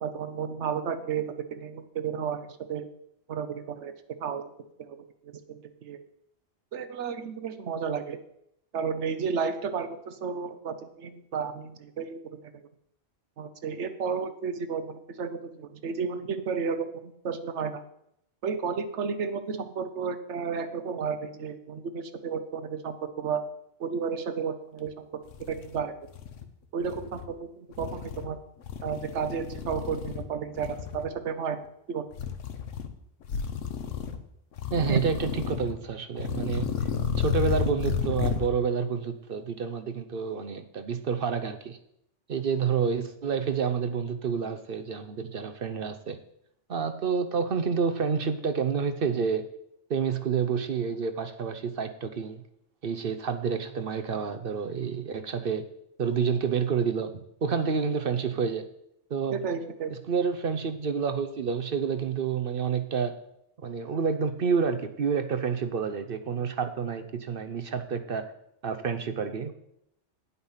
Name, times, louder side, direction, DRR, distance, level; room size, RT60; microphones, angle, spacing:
voice 1, 0.0-2.9 3.3-3.9 4.2-4.5 4.8-6.0 6.7-8.2 8.7-12.5 13.4-17.8 18.4-23.4 23.8-25.2 25.5-26.0 26.7-28.4 28.8-31.6 31.9-32.0 34.9-35.0 59.3-59.9, right 6 dB, 70° right, 9 dB, 1.2 m, -32 dB
sound 1, 24.9-25.0 25.3-26.4 26.8-27.3 27.7-28.3 28.6-30.3 30.6-31.1 32.1-32.9 33.2-34.2 34.6-35.8 36.1-38.5, left 7 dB, 90° left, 1.3 m, -32 dB
voice 2, 34.7-36.7 37.2-41.8 42.3-46.2 46.7-49.4 49.9-52.4 52.8-55.6 56.0-58.7 59.1-59.4 59.9-63.1 63.6-68.3 68.6-69.5, right 6 dB, 55° right, 9 dB, 0.8 m, -29 dB
9.4 x 8.1 x 5.6 m, 0.76 s
omnidirectional pair, 1.2 m